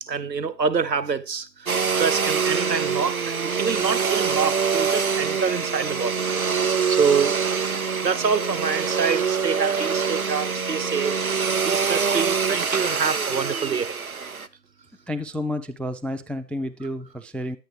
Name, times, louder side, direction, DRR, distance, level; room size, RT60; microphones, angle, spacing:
voice 1, 0.0-7.4 8.0-11.2 11.7-14.0, right 6 dB, 80° right, 0.9 m, -26 dB
Domestic sounds home sounds, 1.7-14.5, right 5 dB, 60° right, 0.6 m, -25 dB
voice 2, 15.1-17.6, left 1 dB, 5° left, 0.4 m, -30 dB
10.0 x 8.4 x 3.2 m
figure-of-eight pair, 175°, 50 cm